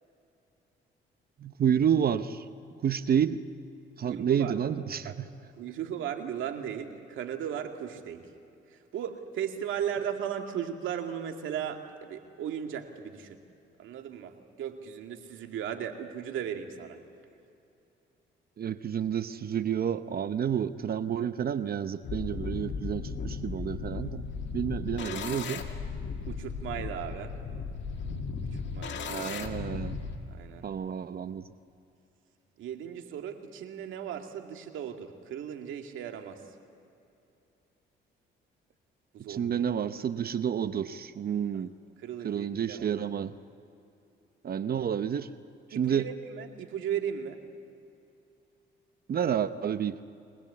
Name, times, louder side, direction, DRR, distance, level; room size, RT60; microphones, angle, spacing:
voice 1, 1.4-2.4 2.8-3.4 4.0-5.3 18.6-24.2 24.5-25.6 29.0-30.0 30.6-31.4 39.3-41.7 42.2-43.3 44.4-45.3 45.8-46.1 49.1-50.0, right 8 dB, 50° right, 12 dB, 0.8 m, -30 dB
voice 2, 4.1-4.6 5.0-5.1 5.6-8.3 8.7-13.4 13.8-17.0 26.3-27.3 28.5-29.3 30.3-30.7 32.6-36.4 39.1-39.5 41.5-41.7 42.0-43.0 45.7-47.4, right 9 dB, 80° right, 4 dB, 2.2 m, -36 dB
sound 1, 22.0-30.2, left 5 dB, 65° left, 2.2 m, -36 dB
24.5 x 19.0 x 8.4 m, 2.6 s
cardioid pair, 90°, 20 cm